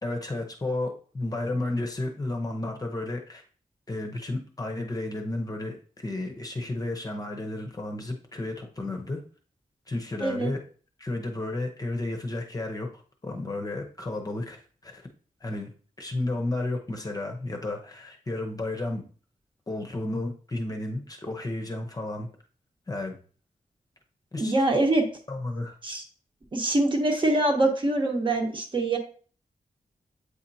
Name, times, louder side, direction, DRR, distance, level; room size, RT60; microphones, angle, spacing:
voice 1, 0.0-3.4 3.9-9.2 9.9-10.6 11.0-12.9 13.2-15.0 15.4-15.7 16.0-19.0 19.7-22.3 22.9-23.2 24.3-24.5 25.3-25.8, left 2 dB, 25° left, 3 dB, 0.8 m, -32 dB
voice 2, 10.2-10.5 24.4-25.0 25.8-26.0 26.5-29.0, right 2 dB, 35° right, 2 dB, 1.0 m, -24 dB
8.1 x 4.3 x 2.7 m, 0.42 s
wide cardioid pair, 180°, 14 cm